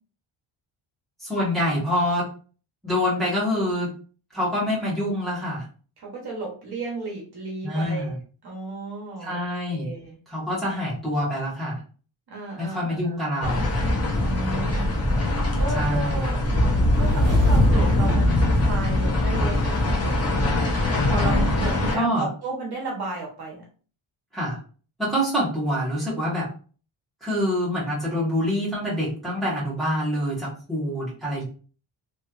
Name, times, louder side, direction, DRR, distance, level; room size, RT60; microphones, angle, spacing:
voice 1, 1.2-2.3 2.8-3.9 4.3-5.6 7.6-8.2 9.2-9.9 10.3-11.8 12.6-13.7 15.7-16.3 21.9-22.3 24.3-24.6 25.0-26.5 27.2-31.4, equal, ahead, -8 dB, 1.4 m, -26 dB
voice 2, 6.0-8.1 8.4-10.2 12.3-13.2 14.2-15.1 15.6-20.4 21.1-23.6, right 3 dB, 50° right, -2 dB, 1.1 m, -34 dB
sound 1, 13.4-22.0, left 1 dB, 30° left, 0.7 m, -22 dB
sound 2, 16.4-19.0, equal, 20° right, 1.2 m, -23 dB
3.1 x 2.9 x 2.5 m, 0.39 s
wide cardioid pair, 175°, 49 cm